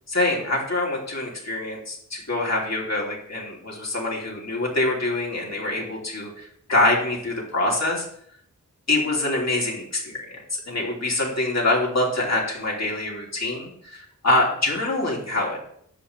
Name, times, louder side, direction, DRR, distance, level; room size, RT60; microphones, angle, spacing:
voice 1, 0.1-8.0 8.9-15.6, left 2 dB, 55° left, -3 dB, 3.3 m, -25 dB
11.0 x 7.6 x 3.4 m, 0.67 s
wide cardioid pair, 55°, 32 cm